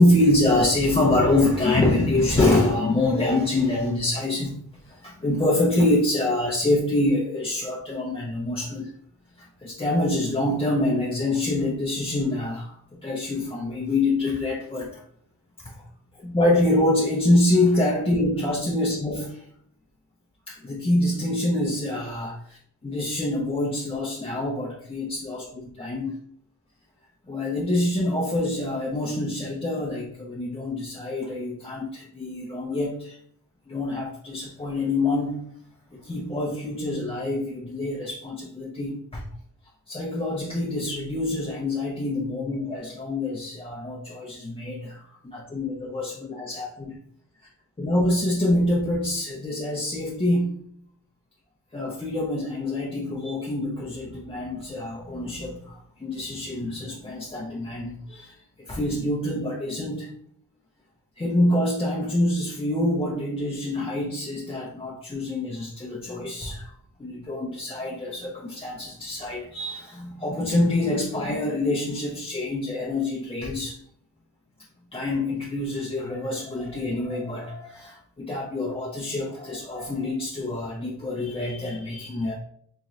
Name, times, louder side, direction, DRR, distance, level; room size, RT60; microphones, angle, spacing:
voice 1, 0.0-4.6 4.8-8.9 9.4-15.0 15.6-15.8 16.1-19.4 20.5-26.1 27.3-33.2 33.7-35.4 35.9-39.2 39.9-47.0 47.8-50.5 51.7-58.3 58.7-60.1 61.2-66.7 67.0-73.8 74.9-82.3, left 1 dB, 15° left, -4 dB, 0.5 m, -25 dB
3.6 x 3.1 x 2.6 m, 0.66 s
wide cardioid pair, 95°, 37 cm